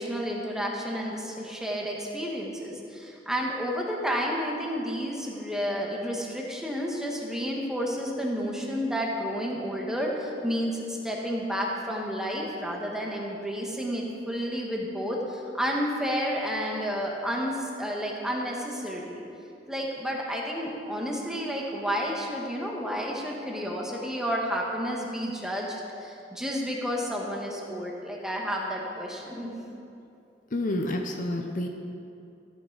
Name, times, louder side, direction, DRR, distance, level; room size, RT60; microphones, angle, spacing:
voice 1, 0.0-19.3 19.7-29.6, equal, 5° right, -2 dB, 1.4 m, -31 dB
voice 2, 30.5-31.7, left 1 dB, 45° left, 3 dB, 0.7 m, -29 dB
13.5 x 9.4 x 4.0 m, 2.7 s
head